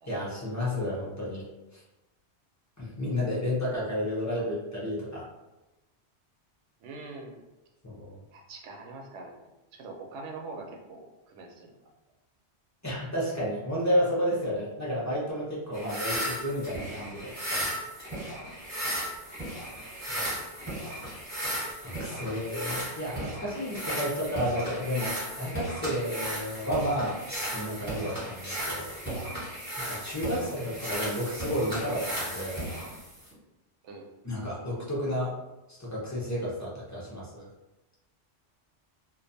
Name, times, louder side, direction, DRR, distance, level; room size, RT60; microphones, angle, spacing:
voice 1, 0.1-1.4 1.7-1.8 2.8-5.3 7.8-8.2 12.8-17.7 20.1-20.2 21.8-28.9 29.9-32.6 34.2-35.3 35.7-37.5, equal, 25° left, -7 dB, 0.4 m, -31 dB
voice 2, 6.8-7.4 8.3-11.8 18.9-19.1 30.3-30.4 33.8-34.1, right 3 dB, 75° right, 1 dB, 0.8 m, -44 dB
sound 1, 15.7-33.3, right 1 dB, 10° right, 0.9 m, -35 dB
2.5 x 2.2 x 2.6 m, 1.0 s
omnidirectional pair, 1.2 m